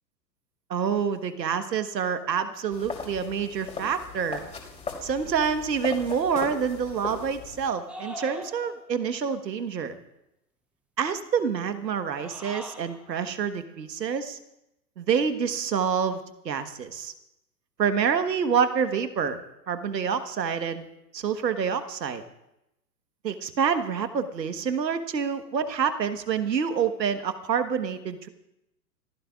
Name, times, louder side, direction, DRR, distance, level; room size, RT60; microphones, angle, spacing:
voice 1, 0.7-4.4 5.0-10.0 11.0-14.4 15.0-17.1 17.8-19.4 19.7-20.9 21.1-22.2 23.2-28.3, right 6 dB, 80° right, 9 dB, 1.4 m, -27 dB
sound 1, 2.7-7.7, left 4 dB, 15° left, 3.1 m, -38 dB
sound 2, 7.9-9.0 12.1-13.1, equal, ahead, 0.8 m, -41 dB
26.0 x 15.0 x 2.4 m, 0.87 s
hypercardioid pair, 115°, 50 cm